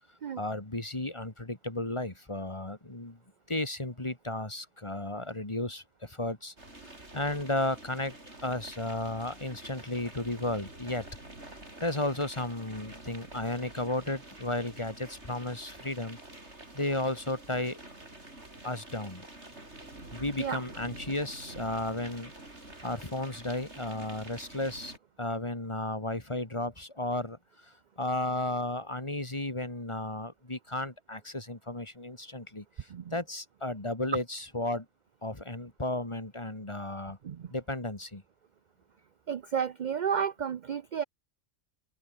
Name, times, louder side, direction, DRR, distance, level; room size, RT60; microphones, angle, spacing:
voice 1, 0.4-3.2 3.5-6.5 6.8-8.1 8.4-11.1 11.8-16.2 16.7-17.8 18.6-19.2 20.1-22.3 22.8-34.9 35.2-37.2 37.5-38.2, left 1 dB, 25° left, 2.4 m, -34 dB
sound 1, 6.6-25.0, right 2 dB, 70° right, 6.6 m, -48 dB
voice 2, 39.3-41.0, right 7 dB, 50° right, 0.6 m, -32 dB
omnidirectional pair, 1.2 m